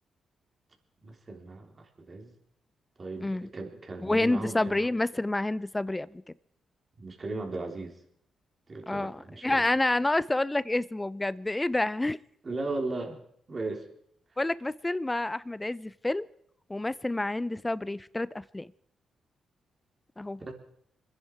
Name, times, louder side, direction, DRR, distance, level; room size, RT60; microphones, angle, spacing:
voice 1, 1.0-2.3 3.0-4.8 7.0-8.0 8.7-9.6 12.4-13.2 13.5-13.9 20.4-20.5, right 2 dB, 40° right, 2 dB, 3.5 m, -37 dB
voice 2, 4.0-6.2 8.9-12.2 14.4-16.3 16.7-18.7 20.2-20.4, left 2 dB, 20° left, 19 dB, 0.6 m, -28 dB
26.5 x 10.5 x 4.6 m, 0.69 s
supercardioid pair, 45°, 0 cm